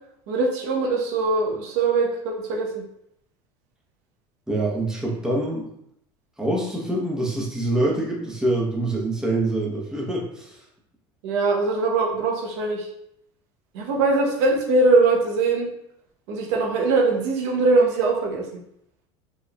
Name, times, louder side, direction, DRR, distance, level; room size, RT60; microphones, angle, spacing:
voice 1, 0.3-2.8 11.2-12.9 13.7-15.7 16.3-18.5, right 3 dB, 70° right, 0 dB, 0.8 m, -21 dB
voice 2, 4.5-5.7 6.4-10.6, right 1 dB, 5° right, -3 dB, 1.0 m, -25 dB
4.3 x 3.1 x 2.3 m, 0.75 s
supercardioid pair, 105°, 14 cm